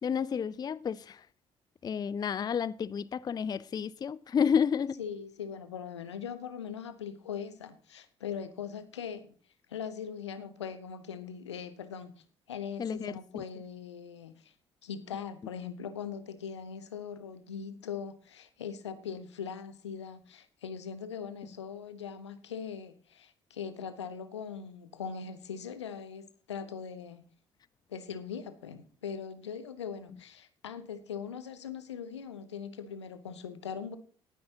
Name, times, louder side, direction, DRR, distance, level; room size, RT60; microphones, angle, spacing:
voice 1, 0.0-1.3 1.8-5.0 12.8-13.4, left 7 dB, 30° left, 0.4 m, -31 dB
voice 2, 5.0-9.3 9.7-14.5 14.8-27.3 27.9-34.0, left 7 dB, 80° left, 0.8 m, -41 dB
19.5 x 9.5 x 2.9 m
figure-of-eight pair, 45°, 14 cm